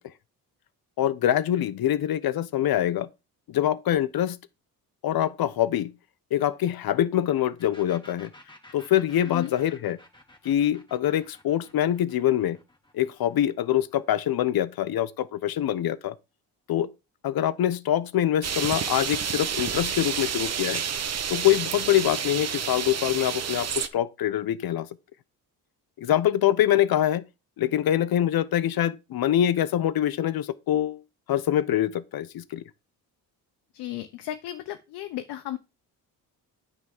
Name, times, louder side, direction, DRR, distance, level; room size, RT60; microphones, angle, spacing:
voice 1, 1.0-3.1 3.5-4.4 5.0-5.9 6.3-8.3 8.7-10.0 10.4-12.6 12.9-16.1 16.7-16.9 17.2-20.8 21.3-24.9 26.0-27.3 27.6-31.0 31.3-32.6, left 11 dB, 65° left, 1.0 m, -24 dB
sound 1, 7.6-15.1, left 1 dB, 10° left, 2.7 m, -53 dB
voice 2, 9.2-9.5 33.7-35.6, left 13 dB, 90° left, 1.0 m, -34 dB
sound 2, 18.4-23.9, right 7 dB, 40° right, 1.1 m, -30 dB
9.5 x 4.0 x 7.2 m
cardioid pair, 90°, 39 cm